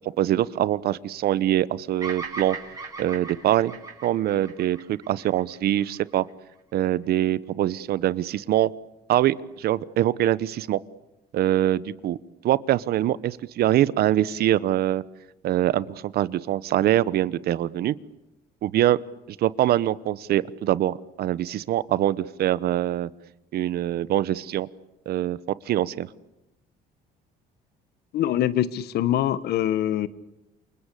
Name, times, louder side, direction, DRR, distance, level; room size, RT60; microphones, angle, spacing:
voice 1, 0.2-2.6 3.0-3.7 4.0-6.2 6.7-8.7 9.1-10.8 11.3-12.2 12.4-15.0 15.4-18.0 18.6-19.0 19.4-23.1 23.5-24.7 25.1-25.4 25.7-26.1, right 13 dB, 65° right, 19 dB, 1.1 m, -23 dB
Bird vocalization bird call bird song, 2.0-6.3, right 4 dB, 20° right, 6.5 m, -38 dB
voice 2, 28.1-30.1, left 12 dB, 70° left, 16 dB, 1.5 m, -24 dB
28.5 x 24.0 x 8.5 m, 0.93 s
cardioid pair, 110°, 17 cm